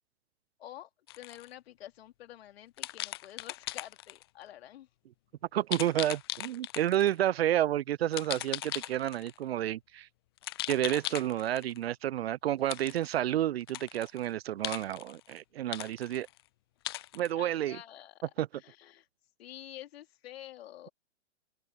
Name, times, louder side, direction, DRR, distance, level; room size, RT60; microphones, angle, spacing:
voice 1, 0.6-0.9 1.1-4.9 17.3-18.2 18.5-19.1 19.4-20.9, left 13 dB, 55° left, 2.9 m, -48 dB
sound 1, 1.1-1.5 2.8-4.2 5.7-7.1 8.1-9.4 10.4-11.8 12.7-13.1 13.6-14.3 14.6-15.4 15.7-16.4 16.8-17.3, left 17 dB, 25° left, 0.3 m, -38 dB
voice 2, 5.5-10.1 10.7-16.3 17.1-17.8 18.4-18.5, right 12 dB, 55° right, 0.5 m, -30 dB
open air
figure-of-eight pair, 115°, 36 cm